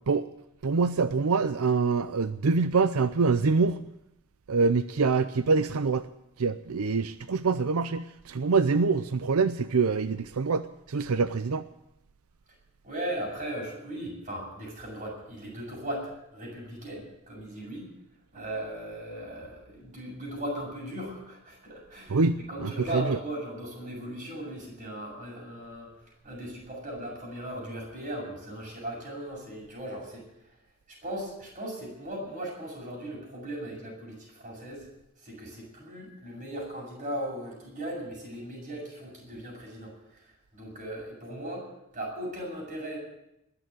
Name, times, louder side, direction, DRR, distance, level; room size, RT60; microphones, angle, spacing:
voice 1, 0.6-3.8 4.5-6.1 6.4-11.7 22.1-23.2, right 4 dB, 85° right, 12 dB, 0.6 m, -25 dB
voice 2, 12.8-17.9 18.3-25.9 26.2-30.2 30.9-34.8 35.2-39.9 40.5-43.0, right 1 dB, 35° right, -2 dB, 7.3 m, -38 dB
21.0 x 7.0 x 9.2 m, 0.84 s
head